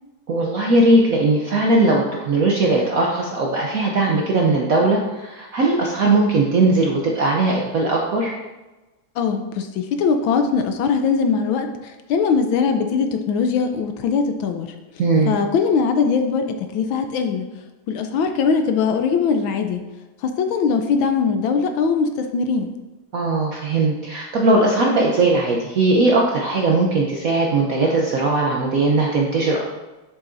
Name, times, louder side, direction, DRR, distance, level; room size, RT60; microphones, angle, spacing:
voice 1, 0.3-8.3 15.0-15.3 23.1-29.6, right 2 dB, 65° right, -1 dB, 0.8 m, -19 dB
voice 2, 9.2-14.7 15.2-17.4 17.9-19.8 20.2-22.7, left 5 dB, 75° left, 6 dB, 1.3 m, -21 dB
7.3 x 7.1 x 2.6 m, 1.1 s
omnidirectional pair, 2.3 m